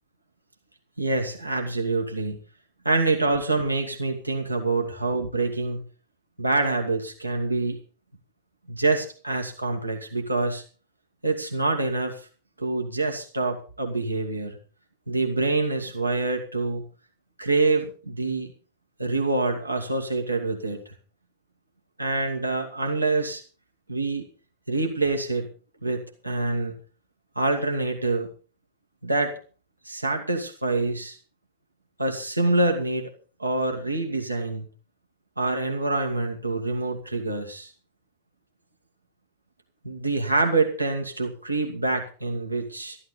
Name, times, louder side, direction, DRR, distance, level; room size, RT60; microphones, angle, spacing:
voice 1, 1.0-2.4 2.8-5.8 6.4-7.8 8.7-10.6 11.2-12.2 12.6-14.6 15.1-16.8 17.4-18.5 19.0-20.9 22.0-23.4 23.9-24.2 24.7-25.5 25.8-26.7 27.4-28.3 29.0-29.3 29.8-31.2 32.0-33.1 33.4-34.7 35.4-37.7 39.8-43.0, right 2 dB, 85° right, 3 dB, 2.4 m, -26 dB
13.5 x 12.5 x 5.3 m, 0.37 s
figure-of-eight pair, 90°, 0 cm